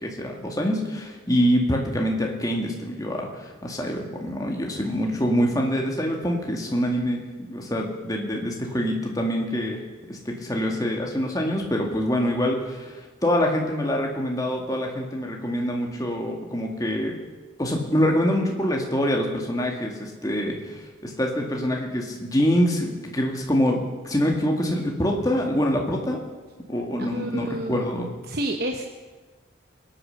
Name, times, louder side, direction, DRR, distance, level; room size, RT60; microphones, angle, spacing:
voice 1, 0.0-7.2 7.5-9.8 10.1-17.1 17.6-26.2 26.7-28.1, equal, 20° left, 0 dB, 2.0 m, -25 dB
voice 2, 27.0-27.9 28.3-28.9, right 1 dB, 50° right, 3 dB, 1.0 m, -30 dB
22.5 x 8.9 x 6.5 m, 1.3 s
head